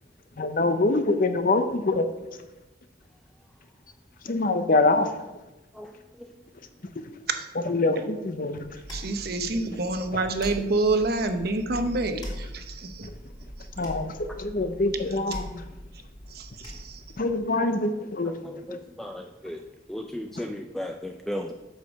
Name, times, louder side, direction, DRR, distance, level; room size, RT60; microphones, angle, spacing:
voice 1, 0.4-2.1 4.2-5.1 7.7-8.8 13.8-15.6 17.2-18.3, left 2 dB, 50° left, 9 dB, 0.7 m, -24 dB
voice 2, 5.7-6.3 18.2-19.6 19.9-21.5, left 1 dB, ahead, 4 dB, 0.4 m, -36 dB
sound 1, 8.6-17.2, equal, 25° left, 2.6 m, -41 dB
voice 3, 8.9-13.1 13.6-13.7 16.3-17.0, right 2 dB, 55° right, 7 dB, 0.9 m, -27 dB
8.2 x 6.6 x 5.2 m, 1.0 s
head